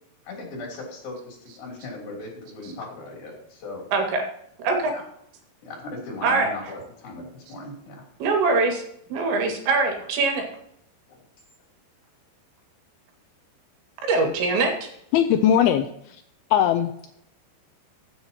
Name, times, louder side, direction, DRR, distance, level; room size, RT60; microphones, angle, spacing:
voice 1, 0.2-3.9 4.9-5.0 5.6-8.0 11.1-11.2, left 2 dB, 55° left, -1 dB, 4.8 m, -38 dB
voice 2, 3.9-4.2 4.6-4.9 6.2-6.5 8.2-8.8 9.1-10.5 14.1-14.7, right 3 dB, 80° right, 3 dB, 4.3 m, -22 dB
voice 3, 15.1-16.2 16.5-16.9, left 10 dB, 90° left, 7 dB, 2.2 m, -20 dB
15.0 x 8.4 x 2.9 m, 0.74 s
omnidirectional pair, 5.1 m